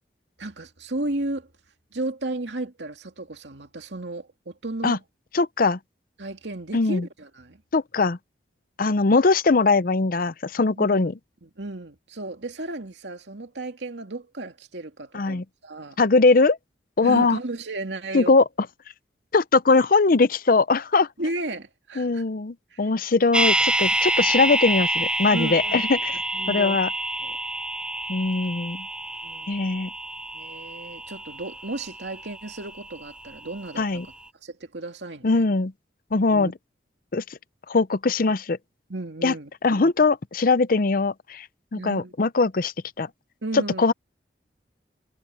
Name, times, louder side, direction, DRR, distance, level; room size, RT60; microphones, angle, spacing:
voice 1, 0.4-1.5 1.9-5.0 6.2-7.6 10.8-11.1 11.4-16.0 17.0-18.3 21.2-22.2 22.7-22.8 25.3-25.8 26.1-26.8 27.2-27.4 29.2-29.5 30.3-33.9 34.4-35.4 36.3-36.5 38.9-39.9 41.7-42.1 43.4-43.8, right 2 dB, 80° right, 2.4 m, -34 dB
voice 2, 5.3-5.8 6.7-7.1 7.7-8.2 8.8-11.1 15.1-15.4 16.0-16.6 17.0-17.4 18.1-18.4 19.3-21.1 22.0-26.2 26.5-26.9 28.1-28.9 29.5-29.9 33.8-34.1 35.2-35.7 36.1-36.5 37.1-37.2 37.7-38.6 39.2-39.3 39.6-41.5 41.7-43.1 43.5-43.9, left 3 dB, 50° left, 0.6 m, -21 dB
sound 1, 23.3-33.4 33.7-33.8, right 1 dB, 5° right, 0.4 m, -27 dB
head